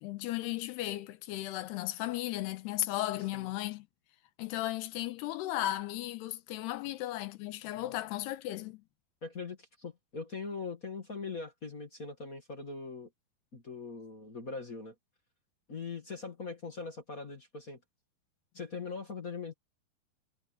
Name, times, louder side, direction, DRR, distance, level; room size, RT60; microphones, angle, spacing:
voice 1, 0.0-3.9 4.4-8.8, left 15 dB, 85° left, 3.1 m, -35 dB
voice 2, 9.2-13.1 13.5-14.9 15.7-17.8 18.5-19.5, left 4 dB, 35° left, 1.3 m, -41 dB
omnidirectional pair, 4.7 m